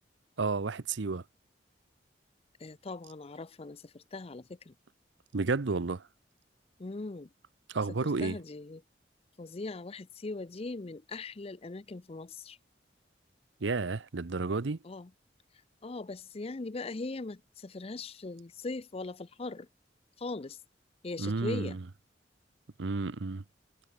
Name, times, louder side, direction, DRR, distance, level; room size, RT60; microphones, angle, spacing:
voice 1, 0.4-1.2 5.3-6.0 7.7-8.4 13.6-14.8 21.2-21.8 22.8-23.4, right 3 dB, 85° right, 0.8 m, -31 dB
voice 2, 2.6-4.7 6.8-7.3 8.0-8.8 9.4-12.6 14.8-15.1 15.8-19.7 20.2-20.6 21.0-21.8, left 3 dB, 35° left, 0.5 m, -40 dB
head